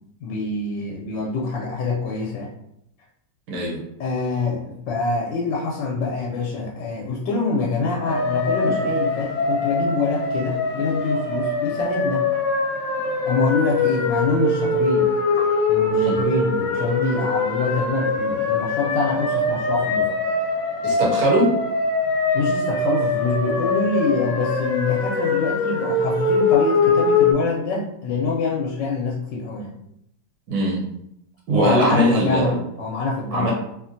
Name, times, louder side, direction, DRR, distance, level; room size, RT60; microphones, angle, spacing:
voice 1, 0.2-2.5 4.0-12.2 13.3-15.1 15.7-20.1 22.3-29.7 31.5-33.5, left 3 dB, 85° left, -3 dB, 1.3 m, -25 dB
voice 2, 3.5-3.8 15.9-16.2 20.8-21.5 30.5-30.8 31.5-32.6 33.3-33.5, right 1 dB, 70° right, -2 dB, 1.1 m, -20 dB
sound 1, 8.1-27.3, left 3 dB, 65° left, 0.9 m, -22 dB
3.0 x 2.5 x 2.6 m, 0.77 s
omnidirectional pair, 1.9 m